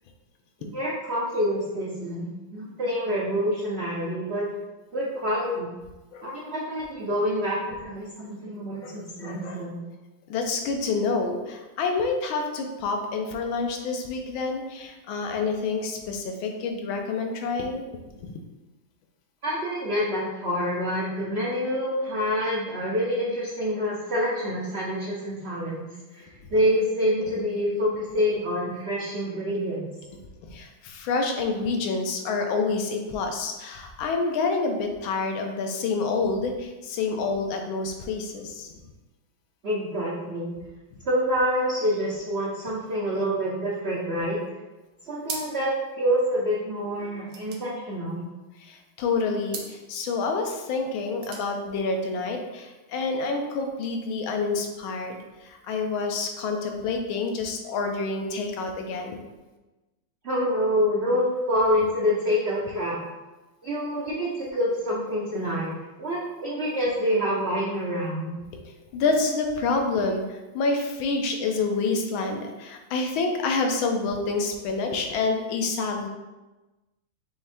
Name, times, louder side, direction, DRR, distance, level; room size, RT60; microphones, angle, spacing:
voice 1, 0.6-2.3 2.5-4.5 4.9-5.7 6.2-9.8 19.4-25.9 26.5-29.9 39.6-40.5 41.0-44.4 45.0-48.3 60.2-63.0 63.6-65.7 66.0-68.3, equal, 80° right, -5 dB, 0.5 m, -27 dB
voice 2, 9.2-9.6 10.3-17.9 18.2-18.4 30.4-38.7 48.6-55.2 55.4-59.2 68.9-76.1, left 4 dB, 90° left, 4 dB, 1.5 m, -28 dB
sound 1, 45.2-45.8 46.1-46.2 46.4-48.6 49.4-49.8 50.9-51.5, right 4 dB, 60° right, 1.0 m, -39 dB
5.6 x 2.6 x 3.4 m, 1.1 s
omnidirectional pair, 2.1 m